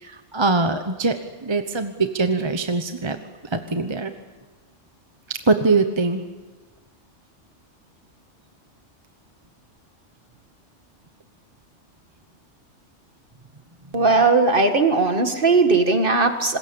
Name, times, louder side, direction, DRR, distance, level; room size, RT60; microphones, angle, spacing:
voice 1, 0.0-1.2 1.4-3.2 3.5-4.1 5.3-6.2, right 3 dB, 25° right, 7 dB, 1.0 m, -22 dB
voice 2, 13.9-16.6, right 3 dB, 45° right, 6 dB, 2.1 m, -18 dB
26.5 x 21.0 x 7.1 m, 1.3 s
omnidirectional pair, 1.3 m